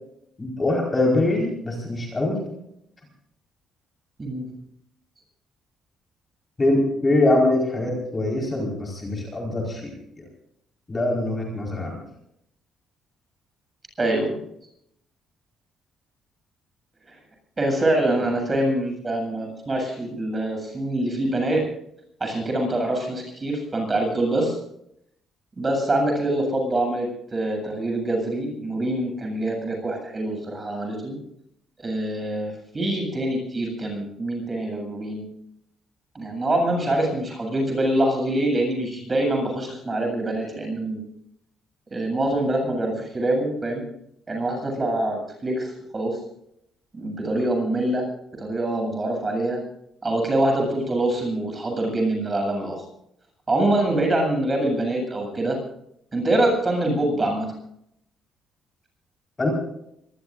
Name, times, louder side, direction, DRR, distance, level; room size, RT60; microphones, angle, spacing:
voice 1, 0.4-2.4 6.6-10.2 10.9-12.0 59.4-59.5, left 2 dB, 20° left, -1 dB, 4.8 m, -23 dB
voice 2, 14.0-14.3 17.1-17.2 17.6-21.6 22.2-24.6 25.6-31.2 31.8-35.3 36.1-41.0 41.9-43.8 44.3-46.2 46.9-48.1 48.3-49.6 50.0-52.8 53.5-55.6 56.1-57.5, right 1 dB, 20° right, 2 dB, 7.9 m, -25 dB
25.5 x 20.5 x 2.6 m, 0.75 s
cardioid pair, 155°, 0 cm